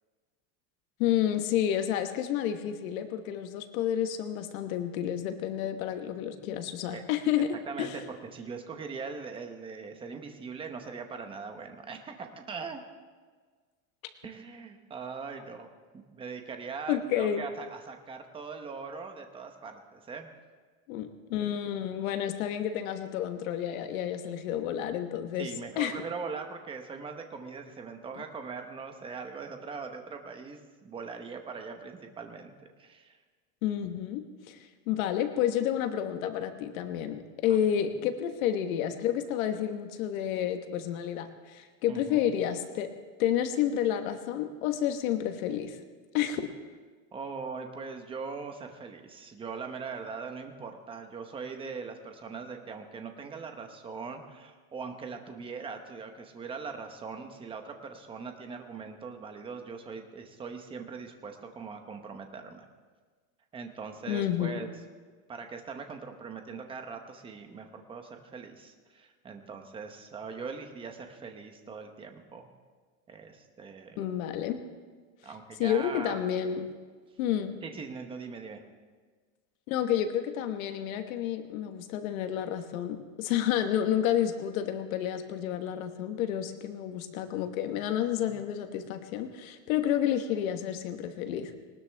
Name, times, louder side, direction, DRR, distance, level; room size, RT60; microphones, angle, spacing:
voice 1, 1.0-7.5 7.8-8.0 16.9-17.4 20.9-25.9 33.6-42.9 43.2-45.8 46.1-46.5 64.1-64.6 74.0-74.6 75.6-76.7 77.2-77.6 79.7-91.5, left 10 dB, 70° left, 7 dB, 1.4 m, -30 dB
voice 2, 7.7-8.0 8.3-12.8 14.2-15.7 15.9-20.3 25.4-32.5 32.8-33.2 36.7-36.8 37.5-37.6 41.9-42.3 47.1-62.7 63.5-64.7 65.3-72.5 73.1-74.0 75.2-76.2 77.6-78.6 88.2-88.3, right 5 dB, 10° right, 5 dB, 0.9 m, -41 dB
20.0 x 19.5 x 3.5 m, 1.5 s
supercardioid pair, 175°, 42 cm